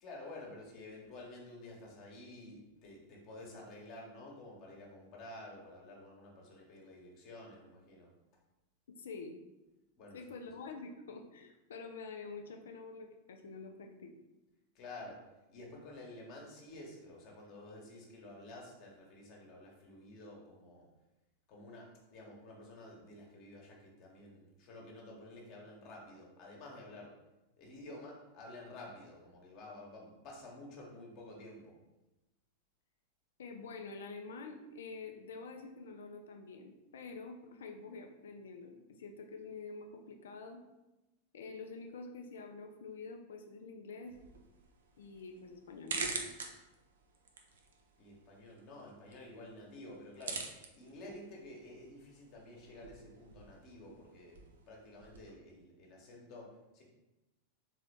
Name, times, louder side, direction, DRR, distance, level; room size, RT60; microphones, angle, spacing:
voice 1, 0.0-8.1 10.0-10.4 14.7-15.2 15.5-20.9 21.5-27.1 27.6-31.7 48.0-50.4 50.7-54.4 54.7-56.8, left 2 dB, 40° left, -1 dB, 1.3 m, -51 dB
voice 2, 8.9-9.4 10.1-14.1 33.4-40.6 41.3-44.1 45.0-46.1, left 4 dB, 65° left, 4 dB, 0.6 m, -47 dB
sound 1, 44.1-55.3, right 4 dB, 65° right, 0.6 m, -46 dB
3.9 x 3.7 x 3.4 m, 1.0 s
figure-of-eight pair, 90°, 0 cm